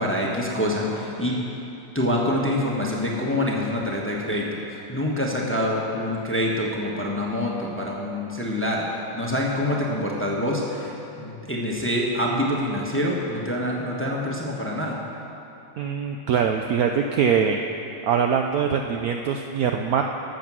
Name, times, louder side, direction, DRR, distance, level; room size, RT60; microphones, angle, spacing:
voice 1, 0.0-1.4 1.9-8.9 9.1-15.0, left 1 dB, 10° left, -2 dB, 1.0 m, -26 dB
voice 2, 15.8-17.6 18.0-20.0, right 7 dB, 70° right, 4 dB, 0.9 m, -23 dB
13.0 x 7.6 x 6.1 m, 2.9 s
omnidirectional pair, 1.9 m